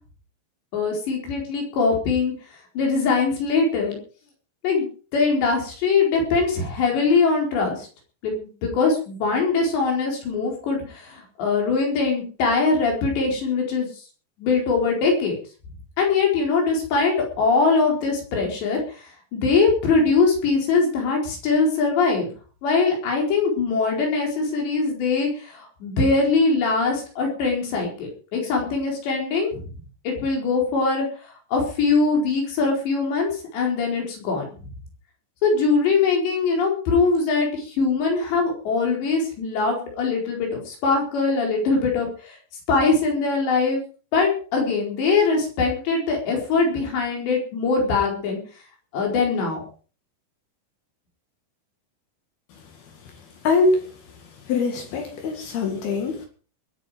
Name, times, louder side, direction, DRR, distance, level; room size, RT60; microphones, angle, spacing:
voice 1, 0.7-2.3 2.7-4.0 4.6-7.9 8.2-13.9 14.4-15.4 16.0-18.8 19.3-22.3 22.6-29.6 30.0-31.1 31.5-34.5 35.4-42.4 42.7-43.8 44.1-48.4 48.9-49.6, left 4 dB, 85° left, 6.8 m, -22 dB
voice 2, 53.4-53.9 54.5-56.3, left 3 dB, 65° left, 3.8 m, -22 dB
21.0 x 9.4 x 5.1 m
omnidirectional pair, 4.9 m